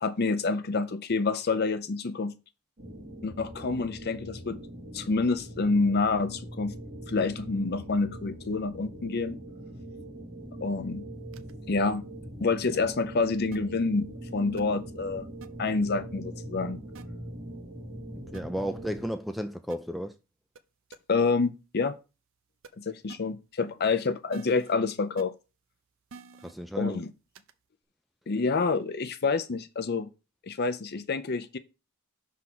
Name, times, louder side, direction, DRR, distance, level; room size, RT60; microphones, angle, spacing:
voice 1, 0.0-2.3 3.2-4.6 4.9-6.7 7.1-9.4 10.6-11.0 11.7-12.0 12.4-15.3 15.6-16.8 21.1-21.9 22.8-25.3 26.8-27.1 28.3-30.1 30.4-31.6, left 4 dB, 45° left, 0.6 m, -28 dB
sound 1, 2.8-19.0, right 1 dB, 35° right, 2.2 m, -42 dB
sound 2, 11.3-11.5 12.9-13.0 13.5-13.6 14.6-14.7 15.4-15.5 16.9-17.0 18.3-18.4 19.7-19.8 20.5-20.6 20.9-21.0 22.6-22.7 23.1-23.2 24.3-24.7 25.2-25.3 26.1-26.5 27.3-27.5, right 4 dB, 60° right, 0.6 m, -47 dB
voice 2, 18.3-20.2 26.4-27.0, equal, ahead, 0.3 m, -33 dB
5.6 x 3.7 x 5.9 m
head